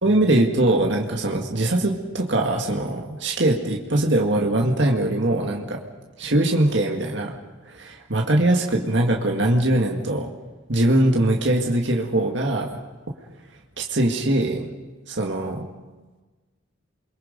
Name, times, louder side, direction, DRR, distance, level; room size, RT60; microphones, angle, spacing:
voice 1, 0.0-5.8 6.2-7.4 7.7-10.3 10.7-12.8 13.8-14.7 15.1-15.6, right 1 dB, 65° right, 0 dB, 1.9 m, -21 dB
28.5 x 23.0 x 5.3 m, 1.3 s
head